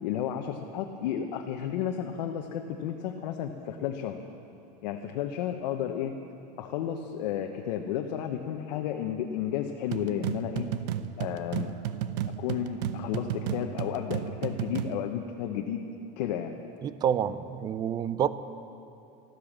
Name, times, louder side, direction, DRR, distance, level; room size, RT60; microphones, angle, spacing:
voice 1, 0.0-4.2 4.8-6.1 6.6-10.7 11.2-11.7 12.4-15.9 16.2-16.6, left 9 dB, 85° left, 4 dB, 1.0 m, -32 dB
sound 1, 9.9-15.0, right 10 dB, 80° right, 0.7 m, -33 dB
voice 2, 16.8-18.3, right 9 dB, 20° right, 14 dB, 0.3 m, -28 dB
13.0 x 13.0 x 7.3 m, 2.7 s
supercardioid pair, 165°, 21 cm